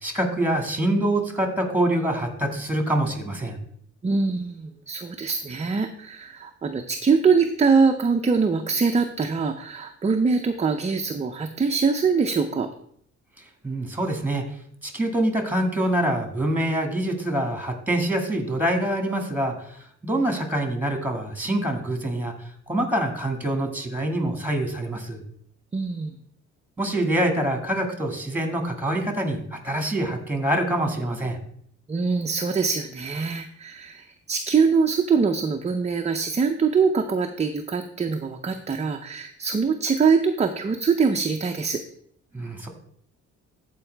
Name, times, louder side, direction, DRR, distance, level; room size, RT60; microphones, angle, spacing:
voice 1, 0.0-3.6 13.6-14.4 14.8-25.2 26.8-31.4 42.3-42.7, right 1 dB, 5° right, 4 dB, 2.0 m, -25 dB
voice 2, 4.0-12.7 25.7-26.1 31.9-41.8, right 5 dB, 20° right, 5 dB, 0.6 m, -23 dB
14.0 x 4.7 x 3.4 m, 0.64 s
cardioid pair, 90°, 30 cm